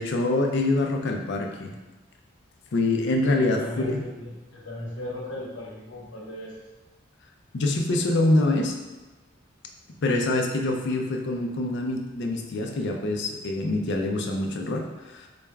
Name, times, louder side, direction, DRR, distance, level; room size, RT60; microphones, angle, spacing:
voice 1, 0.0-1.7 2.7-3.6 3.9-4.0 7.5-8.8 10.0-15.3, left 2 dB, 60° left, 2 dB, 0.5 m, -25 dB
voice 2, 3.2-6.5, left 1 dB, 80° left, -6 dB, 0.9 m, -37 dB
4.0 x 2.3 x 3.4 m, 1.2 s
head